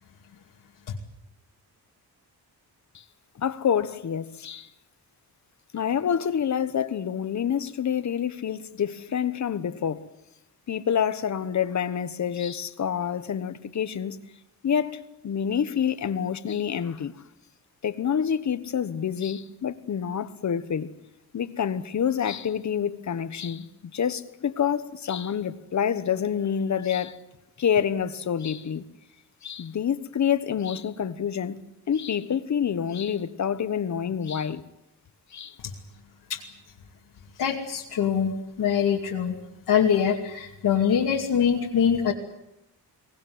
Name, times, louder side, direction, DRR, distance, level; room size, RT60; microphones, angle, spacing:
voice 1, 3.3-4.7 5.7-10.1 10.7-14.2 14.6-17.1 17.8-20.9 21.3-27.2 27.6-28.8 29.4-31.6 31.9-34.6 35.3-35.6, left 8 dB, 45° left, 1.3 m, -27 dB
voice 2, 37.4-39.3 39.7-42.1, left 8 dB, 70° left, 2.7 m, -23 dB
24.0 x 19.0 x 9.6 m
wide cardioid pair, 165°, 39 cm